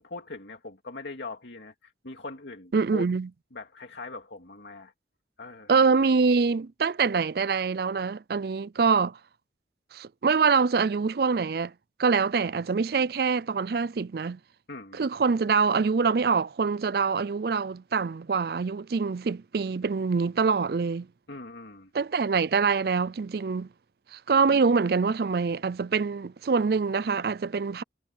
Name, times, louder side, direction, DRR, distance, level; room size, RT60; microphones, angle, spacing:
voice 1, 0.0-3.1 3.5-4.9 5.4-5.7 14.7-15.0 21.3-21.9, left 3 dB, 75° left, 2.4 m, -41 dB
voice 2, 2.7-3.3 5.7-9.2 9.9-11.7 12.0-14.4 14.9-21.1 21.9-23.7 24.1-27.8, right 5 dB, 55° right, 0.4 m, -25 dB
head